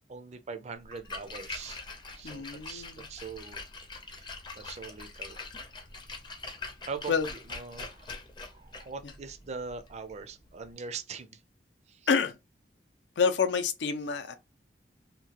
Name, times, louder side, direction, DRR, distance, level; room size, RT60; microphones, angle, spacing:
voice 1, 0.1-3.6 4.0-4.3 4.6-5.4 6.9-8.2 8.5-11.4 11.9-12.1, right 5 dB, 40° right, 0.4 m, -42 dB
Splash splatter, 0.8-10.7, left 3 dB, 25° left, 0.5 m, -44 dB
voice 2, 2.2-3.1 7.1-7.3 12.1-12.4 13.2-14.4, left 6 dB, 85° left, 0.5 m, -28 dB
2.9 x 2.2 x 2.8 m
head